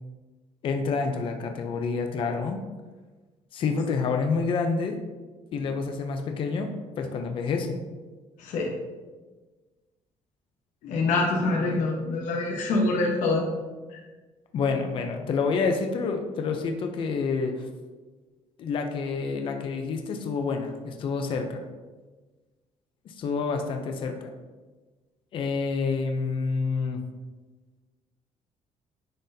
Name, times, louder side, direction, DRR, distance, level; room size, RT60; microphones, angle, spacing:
voice 1, 0.6-2.6 3.5-5.0 5.5-7.8 14.5-17.7 18.6-21.6 23.1-24.3 25.3-27.0, left 4 dB, 45° left, 5 dB, 0.5 m, -28 dB
voice 2, 8.4-8.7 10.8-13.4 13.9-14.0, left 3 dB, 80° left, -1 dB, 1.1 m, -25 dB
10.0 x 4.0 x 2.7 m, 1.3 s
cardioid pair, 180°, 13 cm